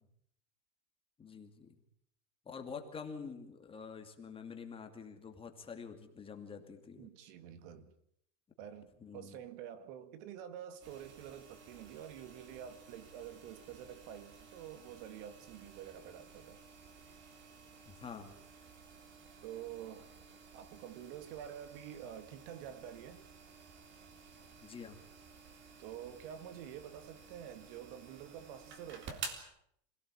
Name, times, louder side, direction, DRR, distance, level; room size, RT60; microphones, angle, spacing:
voice 1, 1.2-1.7 2.5-7.1 9.0-9.4 17.9-18.4 24.6-25.0, left 5 dB, 15° left, 2.4 m, -47 dB
voice 2, 7.0-7.9 8.6-16.6 19.4-20.2 20.5-23.2 25.8-29.3, right 10 dB, 50° right, 2.1 m, -48 dB
sound 1, 10.8-29.4, right 5 dB, 30° right, 3.7 m, -53 dB
26.5 x 17.0 x 8.7 m
supercardioid pair, 160°, 37 cm